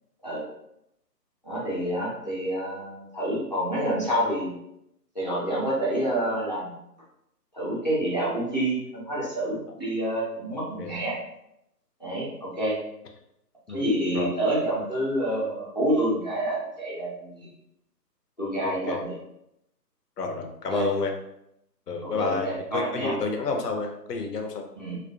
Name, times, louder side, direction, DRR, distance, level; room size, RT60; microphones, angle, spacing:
voice 1, 1.4-4.5 5.1-6.8 7.5-11.2 12.0-12.8 13.7-17.5 18.4-19.2 20.7-20.9 22.0-23.2 23.5-23.6 24.8-25.0, right 1 dB, 30° left, -7 dB, 0.5 m, -28 dB
voice 2, 10.5-10.9 13.7-13.9 14.1-14.3 18.6-19.0 20.2-21.1 21.9-24.7, left 4 dB, 70° left, 3 dB, 0.6 m, -30 dB
2.5 x 2.4 x 2.3 m, 0.81 s
figure-of-eight pair, 155°, 50 cm